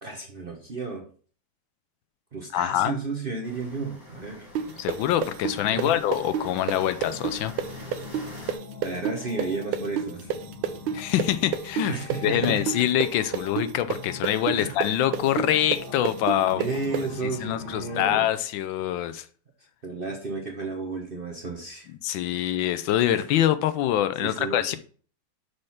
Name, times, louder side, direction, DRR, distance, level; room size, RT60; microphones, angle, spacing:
voice 1, 0.0-1.0 2.3-4.5 5.7-6.0 8.8-10.3 11.9-12.9 14.5-14.7 16.5-18.3 19.8-21.9 22.4-22.6 23.1-23.3 24.2-24.7, right 4 dB, 40° right, 1 dB, 0.8 m, -33 dB
voice 2, 2.5-3.0 4.8-7.5 10.9-11.9 12.2-16.6 17.4-19.3 22.0-24.8, left 12 dB, 75° left, 12 dB, 1.3 m, -25 dB
sound 1, 3.4-8.5, left 1 dB, 25° left, 2.6 m, -45 dB
sound 2, 4.6-12.2 12.4-17.0, right 8 dB, 85° right, 1.5 m, -28 dB
sound 3, 5.4-18.3, left 4 dB, 55° left, 2.1 m, -43 dB
6.6 x 4.3 x 5.6 m, 0.43 s
omnidirectional pair, 2.2 m